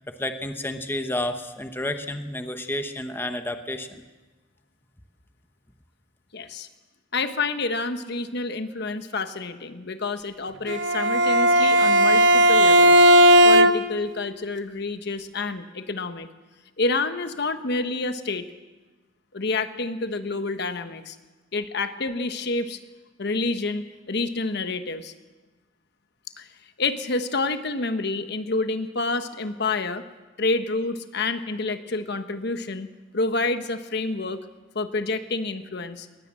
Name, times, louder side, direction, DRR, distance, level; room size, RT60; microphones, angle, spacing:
voice 1, 0.1-4.0, left 1 dB, 10° left, 7 dB, 1.1 m, -30 dB
voice 2, 6.3-6.7 7.1-13.1 13.4-16.3 16.8-18.5 19.3-21.2 21.5-22.8 23.2-25.1 26.4-26.5 26.8-30.0 30.4-32.9 33.1-34.4 34.7-36.1, left 3 dB, 60° left, 9 dB, 1.2 m, -28 dB
Bowed string instrument, 10.7-14.1, equal, 65° right, 1.1 m, -16 dB
20.0 x 20.0 x 7.6 m, 1.2 s
head